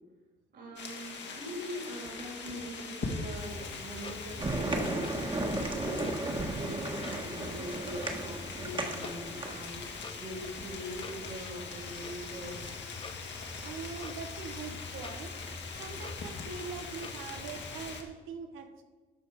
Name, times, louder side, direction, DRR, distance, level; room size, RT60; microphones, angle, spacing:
voice 1, 0.5-12.6, equal, 60° right, 1 dB, 3.2 m, -42 dB
sound 1, 0.8-18.0, left 4 dB, 65° left, 1.7 m, -42 dB
Clock, 3.4-18.0, left 3 dB, 25° left, 0.7 m, -46 dB
sound 2, 4.4-9.7, right 2 dB, 25° right, 1.5 m, -34 dB
voice 2, 13.6-15.3 15.8-18.8, right 5 dB, 90° right, 6 dB, 0.8 m, -42 dB
13.0 x 4.7 x 4.8 m, 1.3 s
cardioid pair, 90°, 20 cm